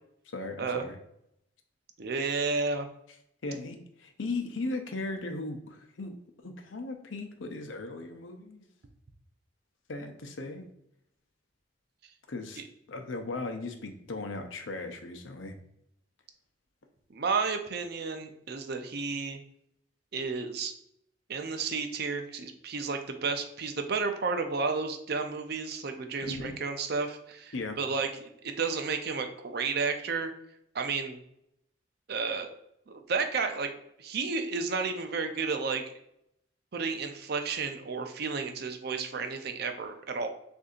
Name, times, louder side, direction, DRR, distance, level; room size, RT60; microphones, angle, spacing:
voice 1, 0.3-1.0 3.4-6.2 6.4-8.6 9.9-10.7 12.3-12.6 12.9-15.6 26.2-26.5 27.5-27.8, left 3 dB, 90° left, 5 dB, 0.7 m, -37 dB
voice 2, 2.0-2.9 12.6-12.7 17.1-19.4 20.1-20.7 21.3-30.3 30.7-31.2 32.1-32.5 32.9-33.7 34.0-35.8 36.7-40.3, right 4 dB, 55° right, 6 dB, 0.5 m, -32 dB
6.4 x 2.7 x 2.5 m, 0.77 s
head